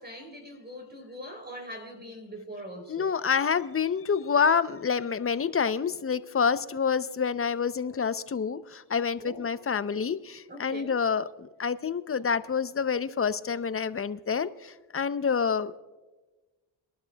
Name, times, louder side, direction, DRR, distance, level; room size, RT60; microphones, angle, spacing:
voice 1, 0.0-3.1 9.2-9.5 10.5-11.0, equal, 20° right, 4 dB, 3.6 m, -42 dB
voice 2, 2.9-15.8, left 6 dB, 30° left, 13 dB, 0.7 m, -28 dB
23.5 x 12.0 x 2.3 m, 1.2 s
cardioid pair, 70°, 48 cm